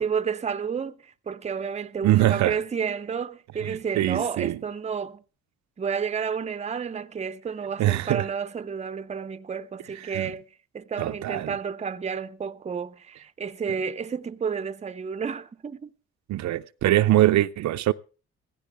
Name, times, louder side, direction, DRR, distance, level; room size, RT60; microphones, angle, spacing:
voice 1, 0.0-5.2 5.8-10.4 10.7-15.9, right 6 dB, 20° right, 0.6 m, -31 dB
voice 2, 2.0-2.6 3.6-4.6 7.8-8.2 10.1-10.3 11.0-11.5 16.3-17.9, right 14 dB, 65° right, 0.5 m, -23 dB
16.0 x 15.5 x 3.4 m
cardioid pair, 90°, 30 cm